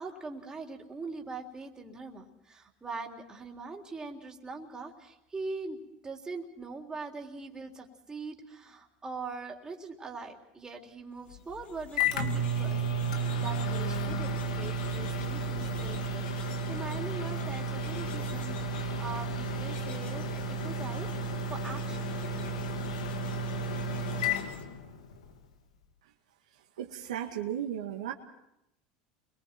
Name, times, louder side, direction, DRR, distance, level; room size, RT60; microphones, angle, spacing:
voice 1, 0.0-12.8 13.4-22.7, right 3 dB, 20° right, 1 dB, 3.5 m, -42 dB
Microwave oven, 11.3-25.3, right 1 dB, 90° left, 1.8 m, -32 dB
sound 1, 11.4-24.6, left 5 dB, 45° left, 2.4 m, -53 dB
voice 2, 26.8-28.1, right 10 dB, 85° right, 2 dB, 1.9 m, -35 dB
29.0 x 23.0 x 4.5 m, 0.82 s
hypercardioid pair, 85°, 3 cm